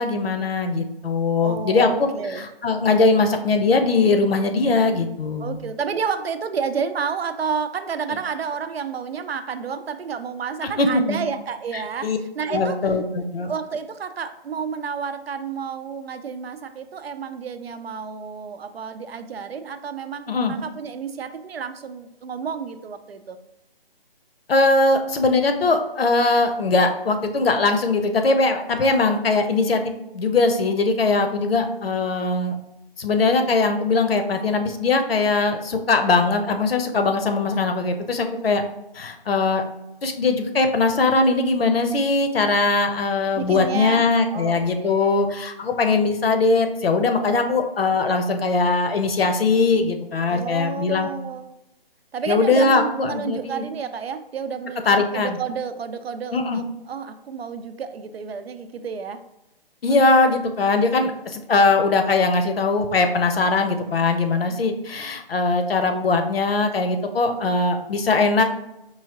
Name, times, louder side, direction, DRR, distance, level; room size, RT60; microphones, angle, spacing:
voice 1, 0.0-5.6 10.8-11.2 11.7-12.2 12.5-13.5 20.3-20.5 24.5-29.8 30.1-32.6 33.0-38.6 38.9-39.6 40.0-51.1 52.3-53.6 54.9-55.4 56.3-56.6 59.8-68.4, left 3 dB, 75° left, 6 dB, 0.8 m, -20 dB
voice 2, 1.4-2.5 5.4-12.8 13.4-23.4 38.3-38.4 43.3-45.2 50.3-51.5 52.1-59.2 59.9-60.0 60.2-60.4 64.5-64.7, right 6 dB, 80° right, 10 dB, 0.6 m, -30 dB
4.7 x 2.8 x 2.9 m, 0.91 s
hypercardioid pair, 160°, 30 cm